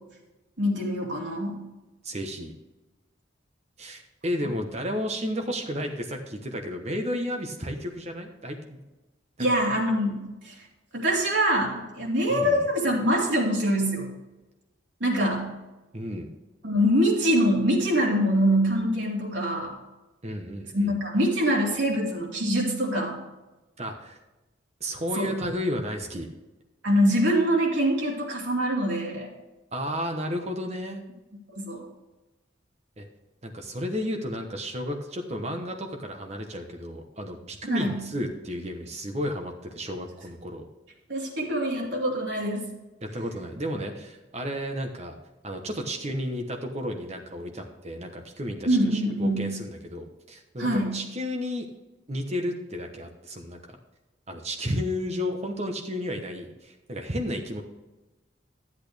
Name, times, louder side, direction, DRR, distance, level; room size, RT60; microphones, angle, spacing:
voice 1, 0.6-1.6 9.4-10.6 10.9-14.1 15.0-15.5 16.6-19.8 20.7-23.2 25.2-25.3 26.8-29.3 31.5-31.8 37.7-38.0 41.1-42.7 48.6-49.5 50.6-51.0, equal, 70° right, -3 dB, 2.8 m, -24 dB
voice 2, 2.0-2.5 3.8-8.8 9.4-9.6 12.3-12.6 15.9-16.3 20.2-20.9 23.8-24.2 24.8-26.3 29.7-31.0 33.0-33.1 33.4-40.7 43.0-45.2 45.4-51.7 52.1-53.8 54.3-57.6, equal, 35° right, 3 dB, 1.1 m, -32 dB
13.0 x 8.4 x 3.4 m, 1.1 s
head